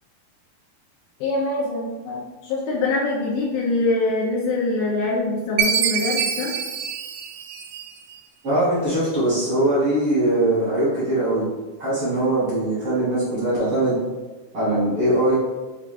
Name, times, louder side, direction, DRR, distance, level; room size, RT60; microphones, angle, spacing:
voice 1, 1.2-6.5, left 2 dB, 90° left, -5 dB, 2.5 m, -24 dB
Chime, 5.6-8.1, right 7 dB, 85° right, 2.4 m, -25 dB
voice 2, 8.4-11.4 11.8-14.0 14.5-15.4, right 1 dB, 55° right, -10 dB, 1.5 m, -21 dB
5.9 x 3.5 x 2.4 m, 1.2 s
omnidirectional pair, 4.3 m